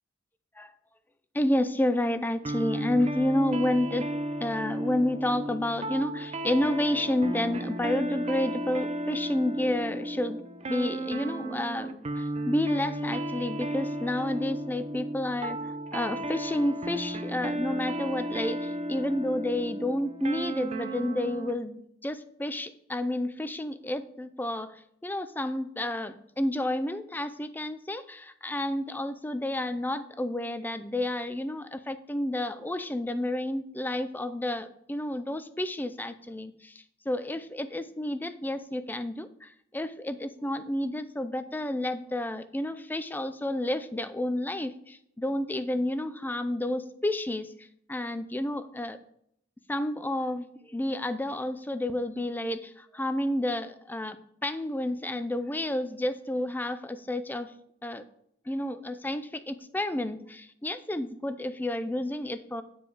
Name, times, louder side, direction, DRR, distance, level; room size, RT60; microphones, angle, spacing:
voice 1, 1.3-4.1 4.4-10.4 10.7-49.0 49.7-57.5 57.8-58.0 58.5-62.6, left 1 dB, 10° left, 12 dB, 0.4 m, -30 dB
sound 1, 2.4-21.6, right 1 dB, 35° right, 0.6 m, -34 dB
9.3 x 4.8 x 4.8 m, 0.71 s
head